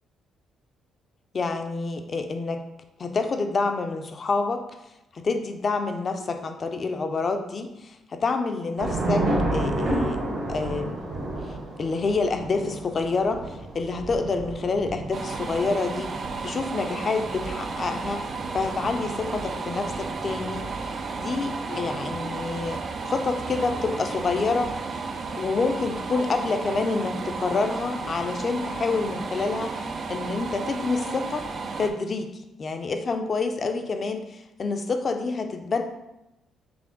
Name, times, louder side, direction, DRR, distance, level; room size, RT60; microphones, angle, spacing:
voice 1, 1.3-2.6 3.0-4.6 5.1-10.2 10.5-11.0 11.8-18.2 18.5-25.0 25.4-31.5 31.8-32.3 32.6-35.8, left 4 dB, 40° left, 6 dB, 0.5 m, -28 dB
Thunder / Rain, 8.8-21.3, right 2 dB, 80° right, 1.5 m, -32 dB
sound 1, 15.1-31.9, right 4 dB, 50° right, 0.5 m, -33 dB
5.8 x 2.1 x 3.8 m, 0.91 s
cardioid pair, 90°, 0 cm